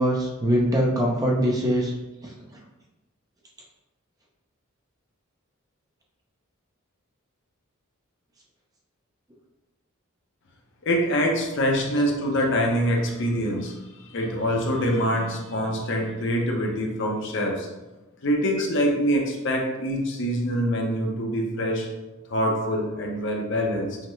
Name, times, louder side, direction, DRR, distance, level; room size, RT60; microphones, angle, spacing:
voice 1, 0.0-1.9 2.2-2.6, equal, 20° right, -2 dB, 0.6 m, -23 dB
voice 2, 10.8-17.7 18.2-21.9 22.3-24.0, equal, 60° left, 0 dB, 0.7 m, -25 dB
5.6 x 2.1 x 3.1 m, 1.1 s
head